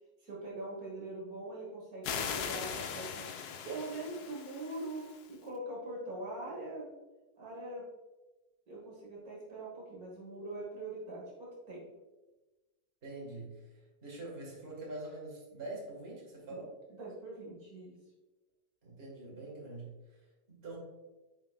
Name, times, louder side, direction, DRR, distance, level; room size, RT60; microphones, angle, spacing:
voice 1, 0.2-6.9 7.4-7.8 8.7-11.9 16.5-16.6 16.9-18.0, right 2 dB, 65° right, -4 dB, 2.0 m, -43 dB
sound 1, 2.0-5.3, left 7 dB, 80° left, 1.2 m, -40 dB
voice 2, 13.0-13.7 14.0-16.8 18.8-20.0 20.5-20.8, right 2 dB, 40° right, -3 dB, 2.1 m, -44 dB
9.0 x 4.9 x 2.4 m, 1.1 s
omnidirectional pair, 1.7 m